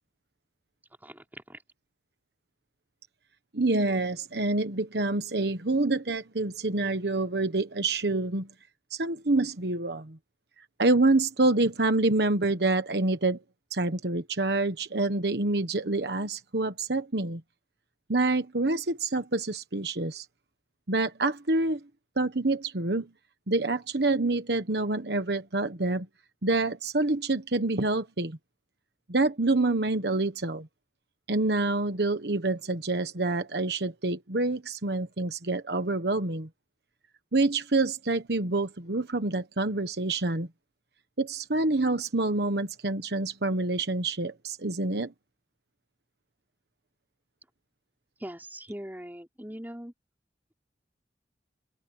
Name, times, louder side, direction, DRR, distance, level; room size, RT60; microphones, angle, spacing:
voice 1, 1.0-1.6 48.2-49.9, equal, 10° right, 5.1 m, -41 dB
voice 2, 3.5-8.5 8.9-10.2 10.8-13.4 13.7-17.4 18.1-20.2 20.9-21.8 22.2-23.1 23.5-26.1 26.4-28.4 29.1-30.7 31.3-36.5 37.3-40.5 41.2-45.1, right 2 dB, 65° right, 1.3 m, -27 dB
head